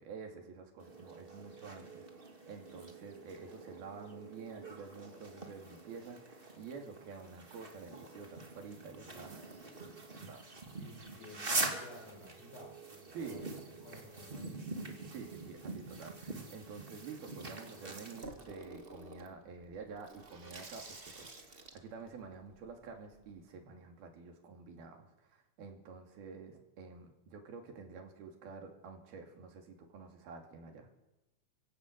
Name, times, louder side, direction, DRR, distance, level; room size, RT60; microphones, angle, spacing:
voice 1, 0.0-10.6 13.1-13.4 15.1-30.9, right 5 dB, 80° right, 3 dB, 4.7 m, -49 dB
sound 1, 0.8-18.2, right 3 dB, 20° right, 1.7 m, -44 dB
voice 2, 1.5-1.9 10.6-14.6, left 1 dB, 55° left, -1 dB, 8.2 m, -54 dB
Water tap faucet / Sink (filling or washing), 18.2-23.4, right 2 dB, 45° right, 0.7 m, -52 dB
27.0 x 16.5 x 8.1 m, 0.99 s
omnidirectional pair, 4.3 m